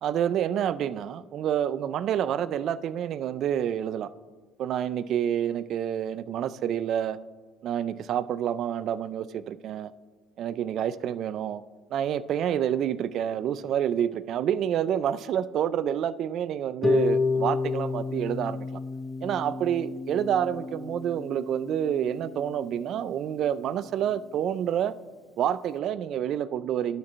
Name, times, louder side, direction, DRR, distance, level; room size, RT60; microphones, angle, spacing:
voice 1, 0.0-4.1 4.6-7.2 7.6-9.9 10.4-11.6 11.9-18.7 19.2-24.9 25.4-27.0, right 9 dB, 60° right, 17 dB, 0.4 m, -28 dB
Harp, 16.8-22.9, left 3 dB, 10° left, 0.4 m, -30 dB
11.0 x 4.5 x 6.0 m, 1.4 s
cardioid pair, 100°, 0 cm